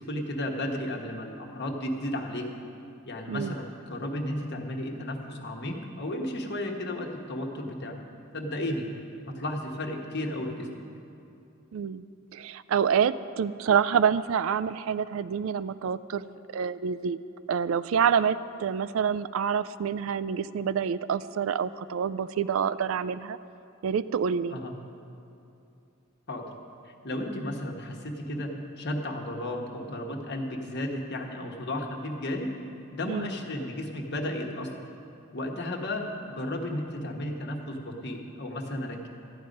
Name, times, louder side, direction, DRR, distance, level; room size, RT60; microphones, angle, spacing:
voice 1, 0.0-2.5 3.1-8.0 8.3-8.9 9.3-10.9 24.5-24.7 26.3-26.4 26.8-28.5 28.8-32.5 32.9-34.7 35.3-39.1, left 1 dB, 50° left, 2 dB, 1.2 m, -33 dB
voice 2, 11.7-12.1 12.3-17.2 17.5-23.4 23.8-24.6 33.1-33.3, right 7 dB, 70° right, 15 dB, 0.3 m, -27 dB
14.0 x 9.9 x 5.3 m, 2.7 s
head